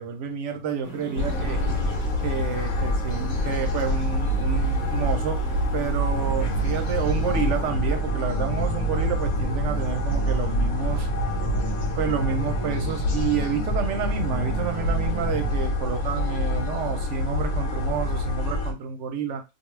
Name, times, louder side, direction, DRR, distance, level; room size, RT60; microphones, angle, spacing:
voice 1, 0.0-1.8 2.2-5.4 5.7-11.1 12.0-19.4, right 6 dB, 65° right, 0.8 m, -29 dB
sound 1, 0.8-7.7, left 1 dB, 10° left, 0.8 m, -42 dB
sound 2, 1.2-18.7, equal, 80° left, 1.1 m, -26 dB
sound 3, 6.1-15.5, right 2 dB, 50° left, 0.9 m, -34 dB
2.4 x 2.3 x 3.1 m
omnidirectional pair, 1.5 m